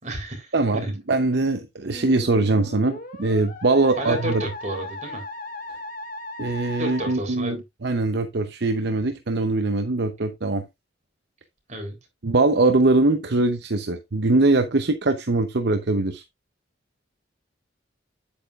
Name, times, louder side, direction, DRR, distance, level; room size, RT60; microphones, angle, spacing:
voice 1, 0.0-0.9 4.0-5.2 6.8-7.6 11.7-12.0, right 1 dB, 40° right, 3.7 m, -31 dB
voice 2, 0.5-4.4 6.4-10.6 12.2-16.2, right 2 dB, 60° right, 0.8 m, -22 dB
Musical instrument, 1.9-7.1, left 2 dB, 45° left, 1.9 m, -37 dB
9.1 x 8.5 x 2.4 m
head